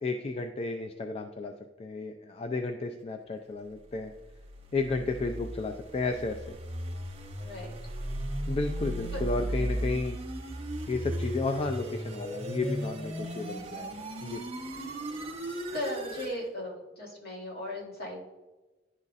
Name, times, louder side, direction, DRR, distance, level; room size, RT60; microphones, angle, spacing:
voice 1, 0.0-1.5 1.8-4.1 4.7-6.6 8.5-10.2 10.9-14.4, left 3 dB, 35° left, 5 dB, 0.3 m, -33 dB
sound 1, 4.2-16.4, right 1 dB, 35° right, 0.9 m, -36 dB
voice 2, 7.4-8.0 9.1-9.2 15.7-18.3, left 1 dB, 60° left, -3 dB, 2.1 m, -37 dB
10.5 x 4.0 x 2.4 m, 1.1 s
head